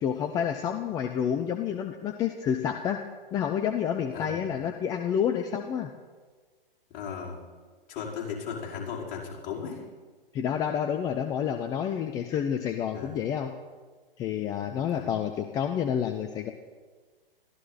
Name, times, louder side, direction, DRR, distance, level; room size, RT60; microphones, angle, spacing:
voice 1, 0.0-3.0 3.3-5.9 10.3-13.5 14.2-16.5, left 8 dB, 15° left, 6 dB, 0.5 m, -29 dB
voice 2, 6.9-7.4 7.9-9.8 12.9-13.3 14.9-15.1, left 6 dB, 30° left, -4 dB, 5.0 m, -36 dB
21.5 x 14.5 x 4.1 m, 1.5 s
figure-of-eight pair, 120°, 29 cm